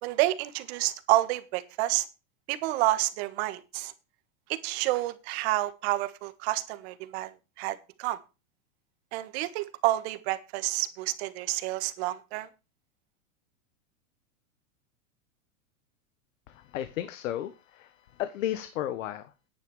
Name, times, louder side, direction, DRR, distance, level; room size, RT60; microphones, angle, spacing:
voice 1, 0.0-2.1 2.5-3.9 4.5-7.3 7.6-8.2 9.1-12.5, right 16 dB, 50° right, 12 dB, 1.6 m, -29 dB
voice 2, 16.5-17.9 18.2-19.3, left 12 dB, 70° left, 12 dB, 1.4 m, -33 dB
10.5 x 9.2 x 4.8 m, 0.29 s
supercardioid pair, 145°, 40 cm